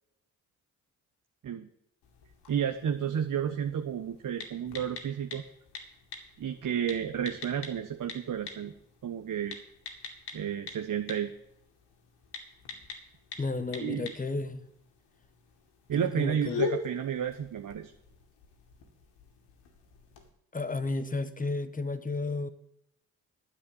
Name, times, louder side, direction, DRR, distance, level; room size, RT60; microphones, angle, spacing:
sound 1, 2.0-20.3, left 5 dB, 75° left, 2.3 m, -43 dB
voice 1, 2.5-5.4 6.4-8.7 9.0-9.6 10.3-11.3 13.8-14.1 15.9-17.9, right 8 dB, 50° right, 6 dB, 1.1 m, -31 dB
voice 2, 13.4-14.6 16.0-16.6 20.5-22.5, left 3 dB, 20° left, 12 dB, 1.3 m, -33 dB
10.0 x 7.1 x 8.3 m, 0.78 s
hypercardioid pair, 50°, 42 cm